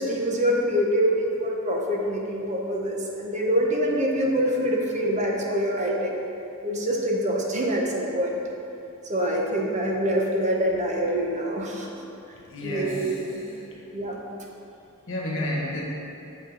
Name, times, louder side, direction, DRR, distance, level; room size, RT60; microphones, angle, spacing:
voice 1, 0.0-6.2 6.6-8.4 9.1-11.9 12.6-13.4 13.9-14.2, equal, 35° right, -1 dB, 0.8 m, -25 dB
voice 2, 12.5-13.1 15.1-15.8, left 1 dB, 65° left, -3 dB, 1.4 m, -30 dB
7.3 x 5.5 x 3.9 m, 2.7 s
head